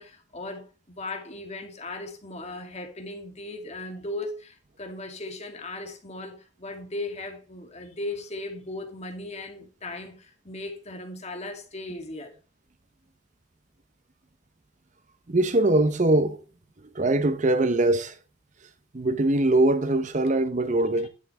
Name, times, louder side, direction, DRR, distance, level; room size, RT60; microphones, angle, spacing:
voice 1, 0.0-12.3 21.0-21.1, left 2 dB, 35° left, 2.5 m, -37 dB
voice 2, 15.3-16.4 16.9-18.1 18.9-21.1, right 2 dB, 40° right, 0.8 m, -22 dB
11.0 x 8.4 x 3.4 m
head